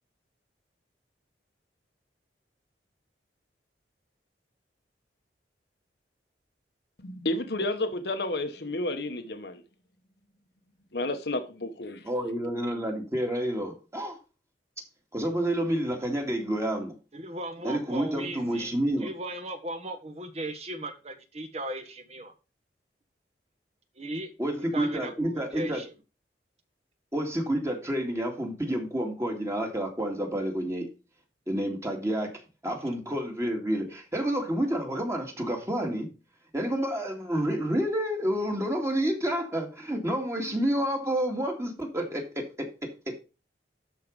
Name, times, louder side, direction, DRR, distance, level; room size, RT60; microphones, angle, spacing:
voice 1, 7.0-9.6 10.9-12.1, left 2 dB, 65° left, 1.1 m, -31 dB
voice 2, 12.1-14.2 15.1-16.9 17.6-19.1 24.4-25.8 27.1-30.9 31.5-32.4 32.6-36.1 36.5-43.2, right 1 dB, 15° right, 2.2 m, -29 dB
voice 3, 17.1-18.7 19.0-22.3 24.0-24.3 24.7-25.9, right 1 dB, 35° right, 1.5 m, -37 dB
12.5 x 4.6 x 5.2 m
head